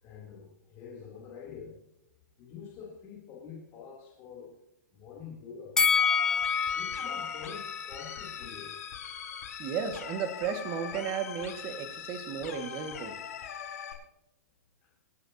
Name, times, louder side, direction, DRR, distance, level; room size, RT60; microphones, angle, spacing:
voice 1, 0.0-1.7 2.4-4.5 4.9-6.1 6.7-8.8 14.8-14.9, left 6 dB, 25° left, -3 dB, 3.4 m, -46 dB
Bell, 5.8-9.0 9.3-9.4, left 6 dB, 5° left, 0.4 m, -29 dB
sound 1, 5.9-13.9, left 8 dB, 60° left, 5.1 m, -42 dB
voice 2, 9.6-13.2, right 7 dB, 25° right, 7 dB, 2.0 m, -34 dB
28.0 x 10.5 x 2.9 m, 0.90 s
hypercardioid pair, 165°, 9 cm